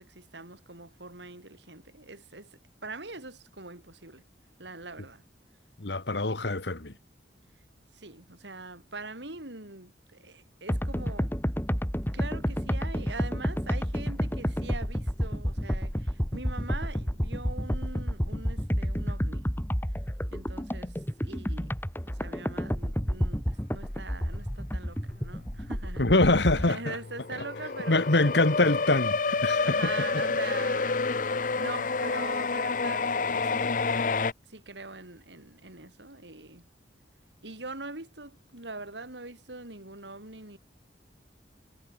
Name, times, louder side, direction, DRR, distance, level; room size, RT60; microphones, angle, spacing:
voice 1, 0.0-4.2 4.6-5.2 7.9-11.3 12.1-19.5 20.3-21.8 22.1-26.1 26.6-28.5 29.6-33.8 34.5-36.6 37.4-40.6, right 3 dB, 85° right, 5.2 m, -43 dB
voice 2, 5.8-6.9 26.0-27.0 27.9-30.2, left 2 dB, 75° left, 1.8 m, -25 dB
sound 1, 10.7-26.7, equal, 10° left, 3.8 m, -30 dB
sound 2, 25.0-25.7 26.1-34.3, left 4 dB, 45° left, 0.8 m, -29 dB
head